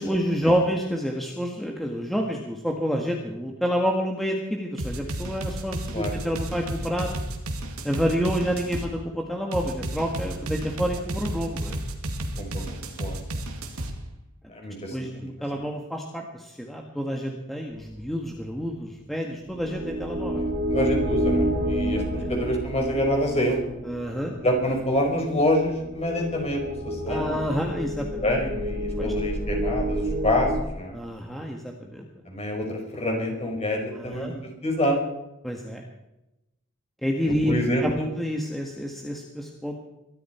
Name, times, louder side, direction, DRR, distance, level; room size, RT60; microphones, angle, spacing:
voice 1, 0.0-7.2 7.8-11.8 14.9-20.4 22.1-22.3 23.8-24.3 27.1-28.2 29.0-29.1 30.9-32.0 33.9-34.3 35.4-35.8 37.0-37.5 37.8-39.8, equal, ahead, 0 dB, 1.6 m, -28 dB
sound 1, 4.8-8.9 9.5-13.9, right 1 dB, 85° right, 2.3 m, -32 dB
voice 2, 12.4-13.2 14.5-15.3 20.7-23.6 24.4-27.6 28.2-31.0 32.3-34.3 34.6-35.0 37.4-38.1, left 1 dB, 30° left, 2 dB, 4.8 m, -27 dB
sound 2, 19.5-30.6, equal, 45° right, 3.0 m, -29 dB
23.5 x 13.0 x 4.5 m, 0.92 s
head